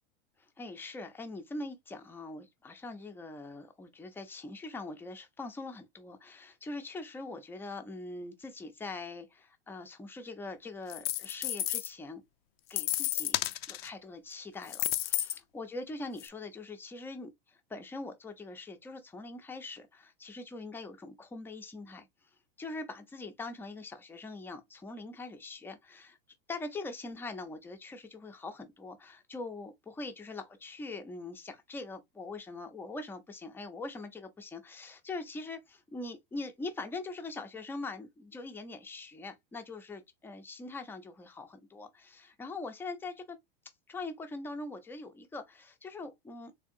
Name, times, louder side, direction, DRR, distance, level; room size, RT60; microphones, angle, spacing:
voice 1, 0.4-12.2 12.7-13.4 13.7-22.1 22.6-26.2 26.5-43.4 43.9-46.5, left 3 dB, 5° left, 0.5 m, -42 dB
sound 1, 10.9-11.9 12.7-13.9 14.6-15.4 16.2-16.3, left 13 dB, 85° left, 0.5 m, -32 dB
3.5 x 3.3 x 2.6 m
supercardioid pair, 130°, 29 cm